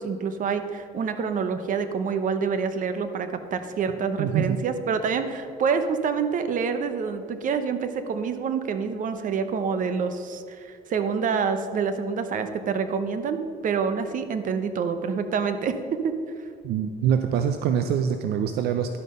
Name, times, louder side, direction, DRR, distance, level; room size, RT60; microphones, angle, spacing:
voice 1, 0.0-15.7 16.0-16.1, right 6 dB, 50° right, 9 dB, 0.9 m, -27 dB
voice 2, 4.2-4.6 16.6-19.0, right 8 dB, 70° right, 7 dB, 0.5 m, -24 dB
11.5 x 5.4 x 6.6 m, 2.2 s
cardioid pair, 110°, 17 cm